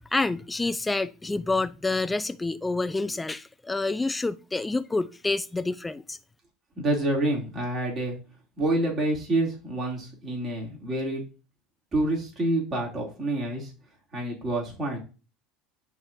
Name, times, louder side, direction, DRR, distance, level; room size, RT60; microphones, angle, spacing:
voice 1, 0.0-6.2, left 3 dB, 10° left, 0.5 m, -28 dB
voice 2, 6.8-8.2 8.6-11.2 11.9-13.7 14.1-15.0, right 1 dB, 35° right, 3.0 m, -27 dB
10.5 x 3.7 x 2.7 m
supercardioid pair, 100°, 0 cm